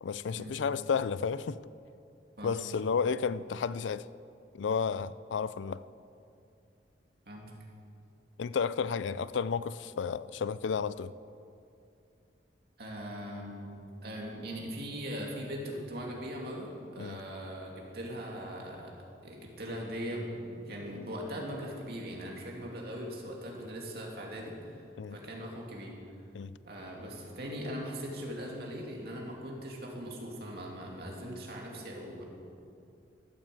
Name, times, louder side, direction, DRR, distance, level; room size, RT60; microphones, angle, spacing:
voice 1, 0.0-1.6 2.4-4.1 4.5-5.8 8.4-11.1 17.0-17.2 25.0-25.2 26.3-26.5, left 6 dB, 85° left, 0.4 m, -32 dB
voice 2, 12.8-13.8 14.0-18.9 19.2-24.8 25.1-25.9 26.6-32.2, equal, 55° right, 2.6 m, -40 dB
13.5 x 9.0 x 7.7 m
head